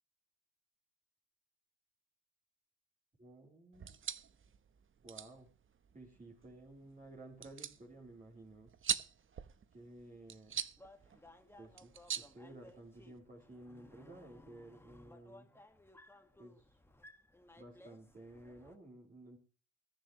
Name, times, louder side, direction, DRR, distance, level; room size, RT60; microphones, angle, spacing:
voice 1, 3.2-3.9 5.0-5.5 5.9-8.7 9.7-10.6 11.5-15.5 16.4-16.8 17.6-19.4, right 2 dB, 25° right, -2 dB, 3.7 m, -54 dB
sound 1, 3.7-13.2, right 7 dB, 40° right, 1.0 m, -44 dB
sound 2, 10.8-18.8, left 1 dB, 10° left, 1.9 m, -60 dB
21.0 x 10.0 x 3.1 m, 0.36 s
cardioid pair, 90°, 30 cm